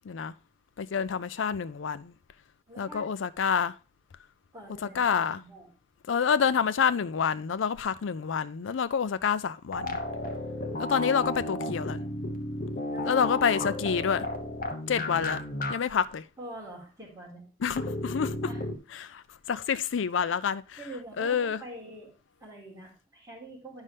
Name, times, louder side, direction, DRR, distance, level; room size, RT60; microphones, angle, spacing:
voice 1, 0.8-2.1 2.8-3.7 4.8-5.4 6.1-10.0 10.8-12.0 13.0-14.3 14.9-15.4 15.7-16.2 17.6-18.3 18.9-20.8 21.2-21.6, left 7 dB, 85° left, 0.4 m, -28 dB
voice 2, 2.7-3.1 4.5-5.7 12.9-13.4 16.4-17.5 18.4-18.6 20.8-22.1 22.4-23.8, right 2 dB, 15° right, 3.8 m, -44 dB
sound 1, 9.7-15.7 16.0-16.1 17.8-18.8, left 1 dB, 45° left, 1.0 m, -33 dB
9.8 x 5.5 x 3.3 m
head